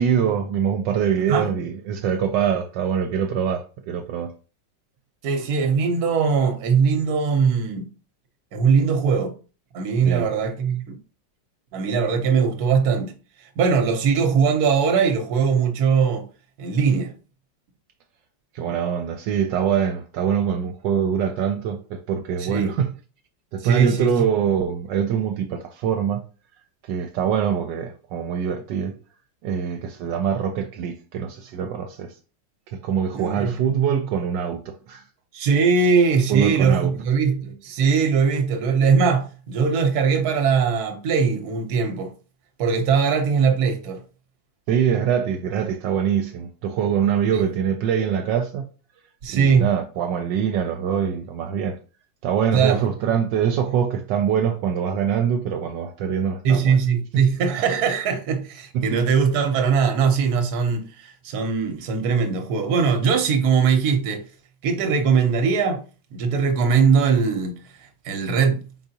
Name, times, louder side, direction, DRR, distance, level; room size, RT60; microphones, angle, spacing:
voice 1, 0.0-4.3 10.0-10.3 18.5-22.9 23.5-26.2 26.9-28.9 29.4-32.1 32.7-35.0 36.3-36.9 44.7-48.6 49.3-51.8 52.2-56.8 57.1-57.2 58.7-58.8, right 8 dB, 80° right, 1.2 m, -24 dB
voice 2, 5.2-7.9 8.5-9.3 9.7-10.9 11.7-13.1 13.6-16.3 16.6-17.1 22.4-22.7 23.6-24.1 33.1-33.5 35.3-42.1 42.6-44.0 47.3-47.4 49.2-49.7 52.5-52.9 56.4-64.2 64.6-65.8 66.1-67.6 68.0-68.6, right 6 dB, 60° right, 1.3 m, -20 dB
4.8 x 4.0 x 2.8 m
omnidirectional pair, 1.9 m